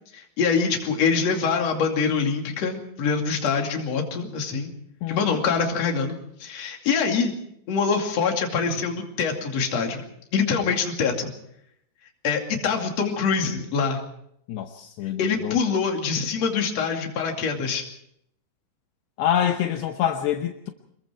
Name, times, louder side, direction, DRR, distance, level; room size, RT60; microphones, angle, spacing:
voice 1, 0.1-4.7 5.1-6.1 6.4-7.3 7.7-10.0 10.3-11.3 12.2-14.0 15.2-17.8, left 5 dB, 40° left, 2 dB, 3.2 m, -24 dB
voice 2, 5.0-5.4 14.5-15.6 19.2-20.7, left 10 dB, 75° left, 5 dB, 2.9 m, -26 dB
26.5 x 21.5 x 4.6 m, 0.73 s
omnidirectional pair, 5.2 m